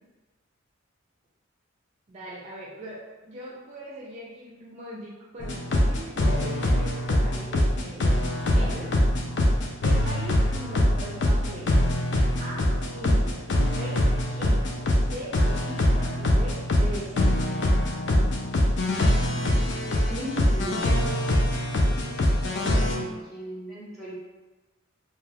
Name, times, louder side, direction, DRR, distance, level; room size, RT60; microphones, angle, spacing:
voice 1, 2.1-3.0 3.2-8.8 9.8-11.7 12.4-12.6 12.9-14.7 15.1-17.3, right 1 dB, 35° right, -6 dB, 0.4 m, -40 dB
sound 1, 5.4-23.0, left 1 dB, 55° left, 0.4 m, -23 dB
voice 2, 8.6-8.9 19.7-20.9 22.6-24.2, right 1 dB, ahead, -9 dB, 0.9 m, -37 dB
2.3 x 2.2 x 3.2 m, 1.2 s
head